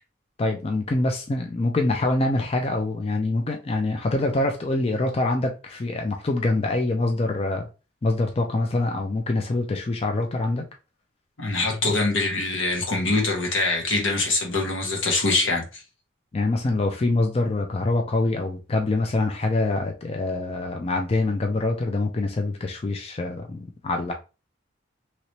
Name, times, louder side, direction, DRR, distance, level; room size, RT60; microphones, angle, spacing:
voice 1, 0.4-7.7 8.0-10.7 16.3-24.1, left 2 dB, 30° left, 0.4 m, -25 dB
voice 2, 11.4-15.8, left 3 dB, 80° left, 1.1 m, -24 dB
3.1 x 2.9 x 2.7 m
head